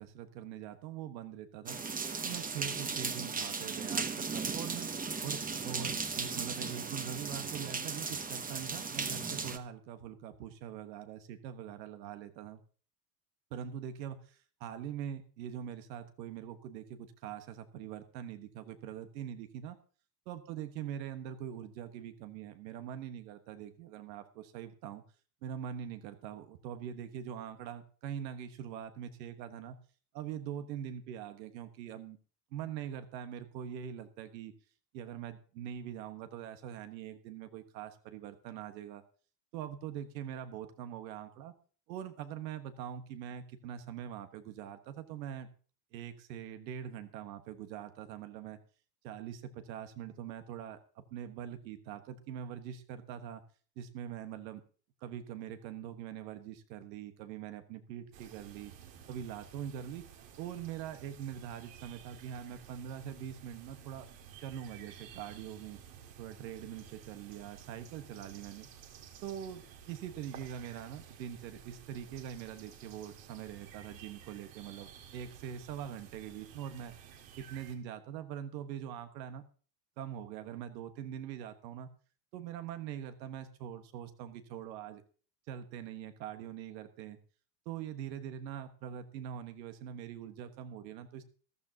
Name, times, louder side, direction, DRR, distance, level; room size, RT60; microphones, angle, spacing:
voice 1, 0.0-1.8 2.2-4.9 5.2-12.6 13.5-19.8 20.3-25.0 25.4-29.8 30.1-32.2 32.5-34.5 34.9-39.0 39.5-41.5 41.9-45.5 45.9-48.6 49.0-53.4 53.8-54.6 55.0-58.7 59.1-60.0 60.4-64.1 64.4-65.8 66.2-68.7 69.2-76.9 77.4-79.4 80.0-81.9 82.3-85.0 85.5-87.2 87.6-91.2, right 9 dB, 85° right, 9 dB, 1.5 m, -43 dB
sound 1, 1.7-9.6, right 5 dB, 15° right, 1.0 m, -36 dB
sound 2, 58.1-77.7, right 8 dB, 65° right, 2.1 m, -53 dB
14.5 x 12.5 x 2.8 m, 0.40 s
supercardioid pair, 100°, 50 cm